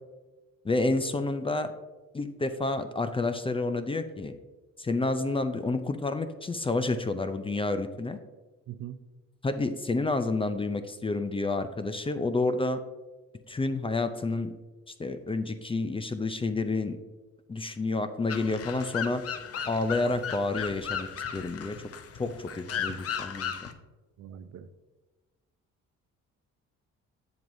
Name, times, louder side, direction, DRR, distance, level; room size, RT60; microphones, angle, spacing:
voice 1, 0.6-1.7 2.1-4.4 4.8-8.2 9.4-12.8 13.5-14.5 14.9-17.0 17.5-19.2 19.7-21.1 21.3-21.7 22.1-23.7, left 3 dB, 20° left, 9 dB, 0.4 m, -29 dB
voice 2, 8.7-9.0 22.7-23.0 24.2-24.7, right 10 dB, 60° right, 11 dB, 0.6 m, -42 dB
sound 1, 18.3-23.7, left 8 dB, 50° left, 0.7 m, -36 dB
7.8 x 7.2 x 2.6 m, 1.2 s
cardioid pair, 90°, 30 cm